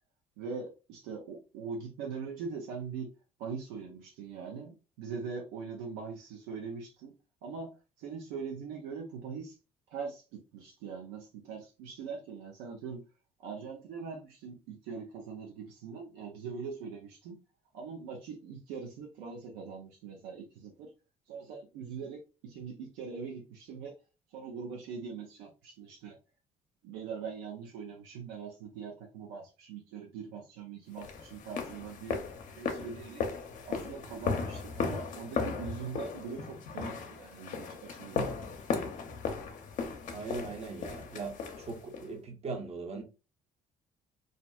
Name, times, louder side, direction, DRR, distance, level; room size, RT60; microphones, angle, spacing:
voice 1, 0.4-3.1 3.4-7.1 7.4-7.7 8.0-9.6 9.9-13.0 13.4-17.4 17.7-20.9 21.3-23.9 24.3-26.2 26.8-32.2 32.5-33.2 33.6-38.3, right 5 dB, 80° right, 0.5 m, -42 dB
sound 1, 31.0-42.1, left 5 dB, 55° left, 0.6 m, -36 dB
voice 2, 40.1-43.0, right 4 dB, 40° right, 0.8 m, -40 dB
2.5 x 2.1 x 2.3 m
hypercardioid pair, 65°, 16 cm